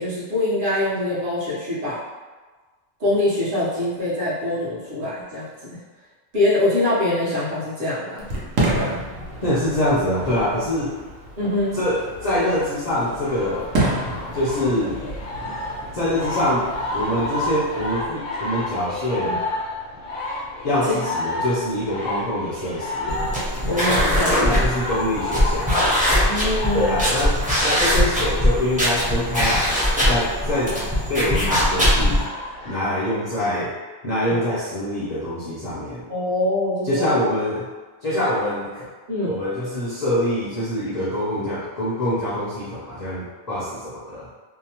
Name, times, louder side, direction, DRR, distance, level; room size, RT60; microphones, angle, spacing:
voice 1, 0.0-2.0 3.0-5.5 5.7-5.8 6.3-8.2 8.7-9.0 11.4-11.7 19.3-19.4 20.9-21.0 23.6-24.7 26.3-27.0 34.3-34.4 36.1-37.2 39.1-39.4, left 1 dB, 50° right, -9 dB, 0.9 m, -24 dB
Fireworks, 8.2-18.1, right 1 dB, 90° right, 1.0 m, -30 dB
voice 2, 9.4-10.9 11.7-13.7 14.3-15.0 15.9-19.4 20.6-23.2 24.4-25.8 26.7-29.8 30.0-30.8 31.1-32.3 32.6-33.7 34.0-36.0 36.8-37.7 38.0-38.9 39.3-44.3, left 1 dB, 50° left, -9 dB, 0.5 m, -24 dB
sound 1, 13.2-32.9, left 1 dB, 85° left, 1.0 m, -31 dB
sound 2, 23.1-32.2, equal, 10° right, 0.4 m, -21 dB
2.7 x 2.0 x 2.8 m, 1.3 s
omnidirectional pair, 1.3 m